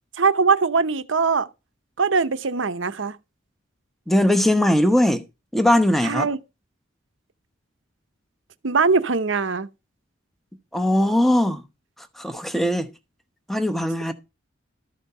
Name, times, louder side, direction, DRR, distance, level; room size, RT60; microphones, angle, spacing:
voice 1, 0.2-1.5 2.0-3.2 6.0-6.4 8.6-9.7, right 4 dB, 75° right, 0.8 m, -21 dB
voice 2, 4.1-5.2 5.5-6.3 10.7-11.6 12.0-12.9 13.5-14.1, left 1 dB, ahead, 0.9 m, -20 dB
13.0 x 5.4 x 5.5 m
head